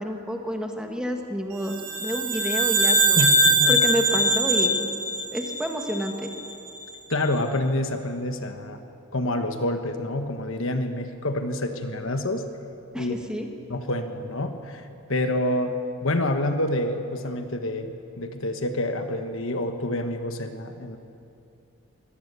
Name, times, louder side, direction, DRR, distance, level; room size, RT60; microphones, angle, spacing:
voice 1, 0.0-3.2 3.7-4.8 5.3-6.3 12.9-13.5, equal, 5° right, 3 dB, 1.5 m, -29 dB
sound 1, 1.7-6.2, right 1 dB, 80° right, 3.9 m, -22 dB
voice 2, 3.2-3.8 7.1-8.8 9.1-12.4 13.0-13.2 13.7-15.8 16.0-21.0, left 1 dB, 60° left, 7 dB, 1.3 m, -27 dB
23.5 x 17.5 x 6.9 m, 2.7 s
head